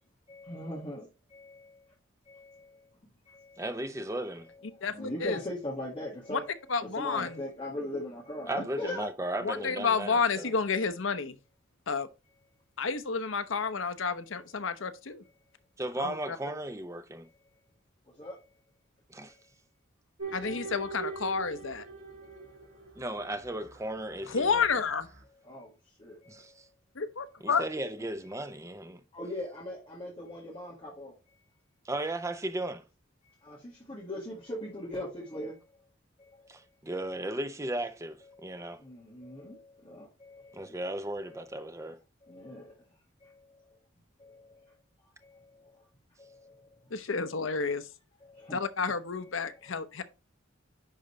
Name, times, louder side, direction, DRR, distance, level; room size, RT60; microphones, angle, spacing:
voice 1, 0.3-1.7 2.3-2.7 3.3-3.6 4.9-6.4 7.0-9.1 16.3-16.4 18.2-18.4 20.4-20.8 25.4-25.7 26.0-26.2 27.5-27.7 29.1-31.1 33.4-35.6 38.8-40.5 42.3-42.7 43.2-43.3 44.2-44.5 46.2-46.5 48.2-48.6, left 1 dB, 30° left, 2.0 m, -40 dB
voice 2, 3.6-4.5 7.1-7.2 8.5-10.5 15.8-17.3 19.1-19.3 23.0-24.7 26.3-26.6 27.4-29.0 31.8-32.8 36.5-38.8 40.5-42.0, right 1 dB, 15° right, 0.6 m, -36 dB
voice 3, 4.8-5.4 6.3-6.4 6.7-7.4 9.4-11.4 11.9-12.1 12.8-15.2 16.0-16.4 20.3-21.9 24.3-25.1 27.0-27.6 46.9-47.8 48.5-50.0, left 5 dB, 70° left, 0.8 m, -30 dB
sound 1, 20.2-23.1 23.4-24.0, right 4 dB, 85° right, 2.9 m, -41 dB
10.5 x 3.9 x 3.2 m
head